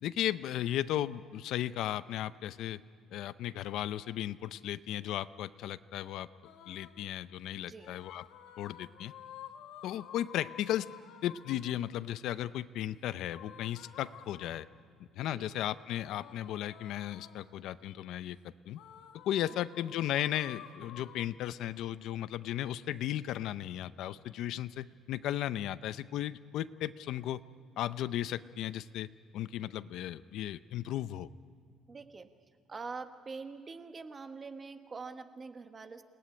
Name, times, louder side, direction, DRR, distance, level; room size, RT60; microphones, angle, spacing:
voice 1, 0.0-2.8 3.1-6.3 6.7-8.2 8.6-9.1 9.8-10.9 11.2-14.7 15.2-18.4 18.7-18.8 19.2-27.4 27.8-29.1 29.3-31.3, left 12 dB, 65° left, 14 dB, 0.6 m, -35 dB
sound 1, 6.4-7.1 7.7-11.9 13.3-14.8 15.9-17.6 18.7-21.3, left 10 dB, 90° left, 1.4 m, -52 dB
voice 2, 31.9-32.3 32.7-36.0, right 4 dB, 25° right, 7 dB, 1.2 m, -44 dB
28.5 x 19.0 x 10.0 m, 2.2 s
cardioid pair, 165°, 0 cm